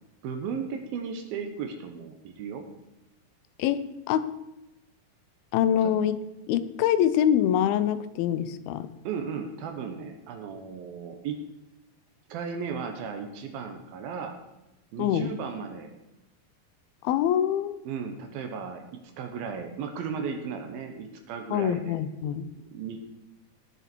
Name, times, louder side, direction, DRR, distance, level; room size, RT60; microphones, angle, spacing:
voice 1, 0.2-2.7 9.0-11.4 12.3-14.4 14.9-15.9 17.9-22.0 22.7-23.0, right 6 dB, 75° right, 5 dB, 2.8 m, -35 dB
voice 2, 3.6-4.4 5.5-8.9 15.0-15.4 17.0-17.8 21.5-22.6, left 10 dB, 80° left, 13 dB, 2.5 m, -25 dB
18.5 x 7.0 x 4.5 m, 0.96 s
omnidirectional pair, 4.4 m